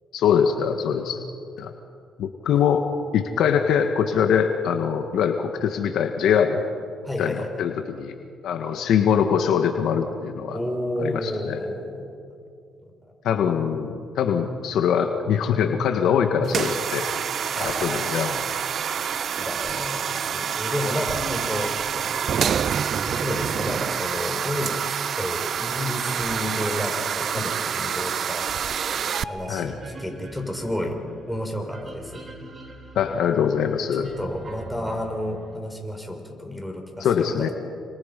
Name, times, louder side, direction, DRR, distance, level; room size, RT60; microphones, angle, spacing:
voice 1, 0.1-1.2 1.6-1.7 2.2-2.8 3.1-6.6 7.2-8.1 8.4-10.6 11.0-11.6 13.2-17.0 17.6-18.5 29.5-29.7 32.9-34.1 37.0-37.5, left 7 dB, 75° left, 5 dB, 1.7 m, -23 dB
voice 2, 7.0-7.6 10.5-12.1 17.5-18.1 19.4-21.7 22.1-22.3 23.0-28.5 29.3-31.0 31.3-32.2 34.0-37.1 37.3-37.5, left 1 dB, 5° left, 2 dB, 5.0 m, -31 dB
sound 1, 16.4-29.2, right 8 dB, 55° right, 0.6 m, -27 dB
sound 2, 28.5-35.6, right 2 dB, 35° right, 4.2 m, -42 dB
29.5 x 26.5 x 5.4 m, 2.3 s
cardioid pair, 90°, 0 cm